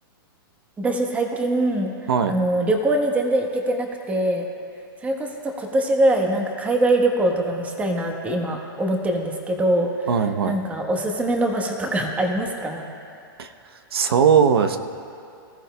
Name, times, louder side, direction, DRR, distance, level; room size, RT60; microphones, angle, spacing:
voice 1, 0.8-1.9 2.3-4.5 5.0-12.8, right 1 dB, 10° right, 2 dB, 1.2 m, -23 dB
voice 2, 10.1-10.5 13.4-13.5 13.9-14.8, right 7 dB, 85° right, 8 dB, 0.9 m, -19 dB
24.0 x 14.0 x 2.3 m, 2.5 s
hypercardioid pair, 150°, 12 cm